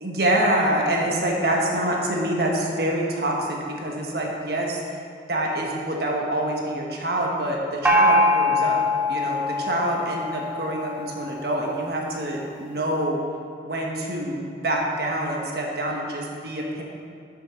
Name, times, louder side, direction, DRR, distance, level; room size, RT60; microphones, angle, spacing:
voice 1, 0.0-4.8 5.3-8.8 9.1-13.2 13.6-16.8, right 1 dB, 55° right, -1 dB, 1.3 m, -26 dB
Gong, 7.8-11.4, left 1 dB, 10° right, 0.9 m, -22 dB
7.5 x 6.8 x 5.8 m, 2.5 s
head